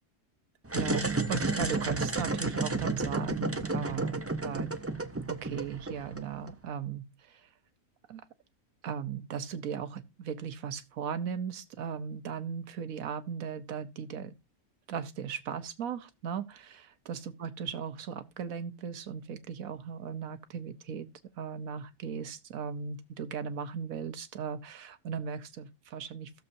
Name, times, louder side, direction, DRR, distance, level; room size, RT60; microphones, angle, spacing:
sound 1, 0.6-6.5, right 3 dB, 25° right, 0.3 m, -32 dB
voice 1, 0.7-4.7 5.3-7.5 8.1-8.2 8.8-14.3 14.9-21.1 21.4-26.4, right 7 dB, 75° right, 1.3 m, -37 dB
16.0 x 6.9 x 2.7 m
omnidirectional pair, 1.5 m